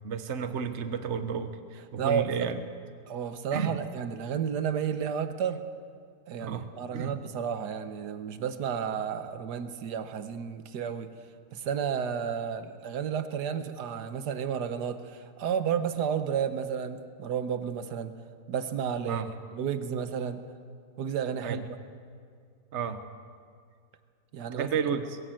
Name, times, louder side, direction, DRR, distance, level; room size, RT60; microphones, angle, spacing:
voice 1, 0.0-2.6 3.5-3.8 6.4-6.6 6.9-7.1 19.1-19.3 21.4-21.6 22.7-23.0 24.5-25.2, right 7 dB, 45° right, 9 dB, 1.3 m, -32 dB
voice 2, 2.0-2.5 3.1-5.6 6.3-11.1 11.5-18.1 18.5-20.4 21.0-21.8 24.3-25.0, right 7 dB, 75° right, 10 dB, 1.6 m, -32 dB
21.5 x 17.0 x 7.7 m, 2.2 s
omnidirectional pair, 1.8 m